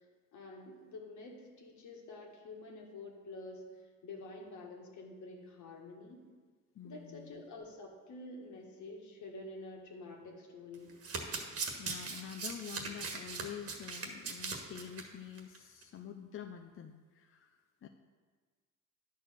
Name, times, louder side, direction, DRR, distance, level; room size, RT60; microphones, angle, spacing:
voice 1, 0.3-3.6 4.0-6.2 6.8-10.9, left 2 dB, 75° left, 0 dB, 1.8 m, -48 dB
voice 2, 6.8-7.4 11.8-17.5 17.8-17.9, left 9 dB, 45° left, 6 dB, 0.6 m, -47 dB
Domestic sounds home sounds, 10.7-15.0 15.4-15.6 15.8-15.9, right 4 dB, 50° right, 1.5 m, -40 dB
10.0 x 4.6 x 6.7 m, 1.4 s
cardioid pair, 90°, 30 cm